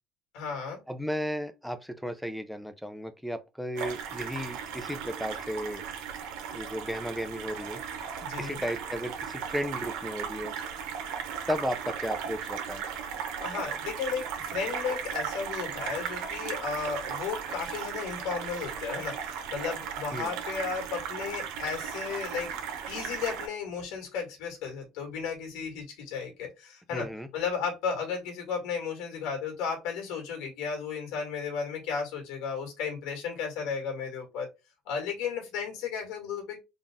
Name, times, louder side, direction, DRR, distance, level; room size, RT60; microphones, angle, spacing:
voice 1, 0.3-0.8 8.2-8.6 13.4-22.5 22.8-34.5 34.9-36.6, left 6 dB, 85° left, 1.9 m, -34 dB
voice 2, 0.9-5.8 6.5-7.8 8.4-10.5 11.5-12.8 20.1-20.3 26.9-27.3, equal, ahead, 0.5 m, -34 dB
sound 1, 3.8-23.5, right 7 dB, 90° right, 0.9 m, -36 dB
3.9 x 2.5 x 3.5 m
cardioid pair, 145°, 0 cm